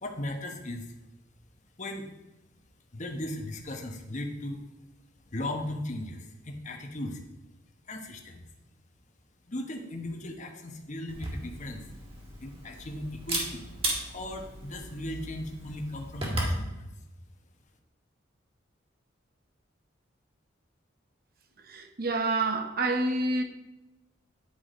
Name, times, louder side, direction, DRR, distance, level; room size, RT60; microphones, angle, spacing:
voice 1, 0.0-0.9 1.8-2.1 2.9-4.6 5.3-7.2 7.9-8.4 9.5-11.8 12.4-13.7 14.1-16.9, left 1 dB, 40° left, 1.1 m, -37 dB
Camera, 11.1-16.6, right 1 dB, 30° right, 1.9 m, -35 dB
voice 2, 21.6-23.4, right 2 dB, 50° right, 0.9 m, -28 dB
10.0 x 4.8 x 5.1 m
head